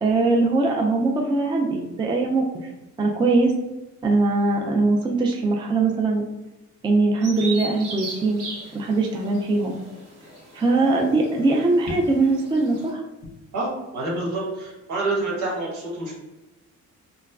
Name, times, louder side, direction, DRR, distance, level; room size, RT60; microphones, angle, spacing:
voice 1, 0.0-2.4 3.0-3.5 4.0-6.2 6.8-8.4 8.7-9.8 10.5-13.0, right 3 dB, 15° right, 1 dB, 0.3 m, -21 dB
Bird vocalization bird call bird song, 7.2-12.9, right 3 dB, 90° right, 1.3 m, -38 dB
voice 2, 13.5-16.1, right 2 dB, 70° right, -5 dB, 1.3 m, -27 dB
3.0 x 2.2 x 2.3 m, 1.0 s
cardioid pair, 90°, 30 cm